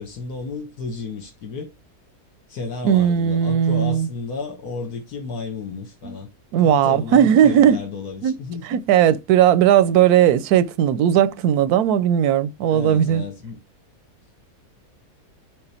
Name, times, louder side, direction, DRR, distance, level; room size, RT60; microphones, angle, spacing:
voice 1, 0.0-1.7 2.5-6.3 6.6-8.8 12.7-13.6, left 4 dB, 85° left, 1.8 m, -32 dB
voice 2, 2.8-4.1 6.0-6.2 6.5-7.8 8.2-8.3 8.7-13.2, right 10 dB, 85° right, 1.1 m, -17 dB
6.8 x 3.6 x 4.3 m
omnidirectional pair, 1.6 m